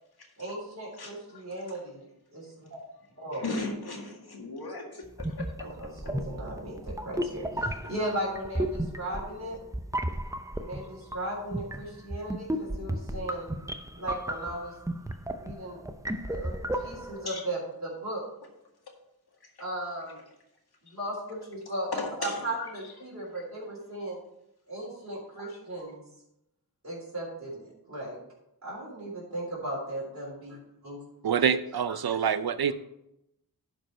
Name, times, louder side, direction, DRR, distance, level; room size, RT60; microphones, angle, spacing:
voice 1, 0.4-2.0 2.3-2.8 3.2-3.4 5.6-9.6 10.6-13.5 13.9-14.7 15.4-15.8 16.2-18.2 19.6-20.2 20.8-21.9 22.2-24.2 24.7-26.0 26.8-28.2 28.6-30.6 30.8-31.0, right 1 dB, 45° right, -6 dB, 3.5 m, -36 dB
voice 2, 1.0-1.8 3.3-5.7 16.7-17.4 19.3-19.6 20.9-21.0 21.9-23.1 23.3-23.4 25.3-25.6, left 3 dB, 75° left, 1 dB, 1.9 m, -38 dB
sound 1, 5.1-17.3, right 1 dB, 10° right, 0.6 m, -34 dB
voice 3, 31.2-32.7, right 7 dB, 70° right, 13 dB, 0.6 m, -26 dB
11.5 x 5.1 x 4.4 m, 0.83 s
wide cardioid pair, 60°, 38 cm